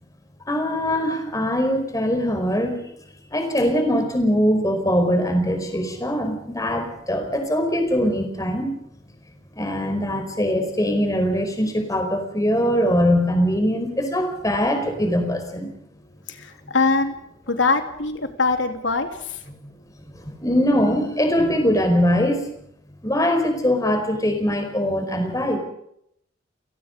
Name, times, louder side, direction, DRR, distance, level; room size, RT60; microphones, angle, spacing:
voice 1, 0.5-2.8 3.3-8.7 9.6-15.7 16.6-16.7 20.1-22.5 23.0-25.6, equal, 20° left, 5 dB, 5.0 m, -22 dB
voice 2, 16.3-17.1 17.5-19.4, left 3 dB, 75° left, 6 dB, 3.2 m, -23 dB
30.0 x 18.5 x 5.3 m, 0.74 s
head